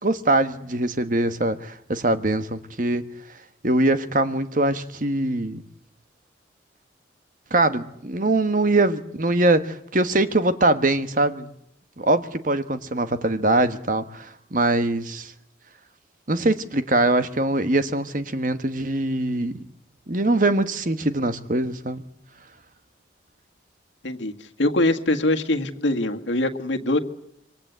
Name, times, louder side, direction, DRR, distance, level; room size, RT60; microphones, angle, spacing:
voice 1, 0.0-3.0 3.6-5.6 7.5-11.5 12.0-15.3 16.3-19.6 20.1-22.0, right 2 dB, 45° right, 1.3 m, -22 dB
voice 2, 24.6-27.0, left 1 dB, 85° left, 1.8 m, -23 dB
26.5 x 24.0 x 8.1 m
head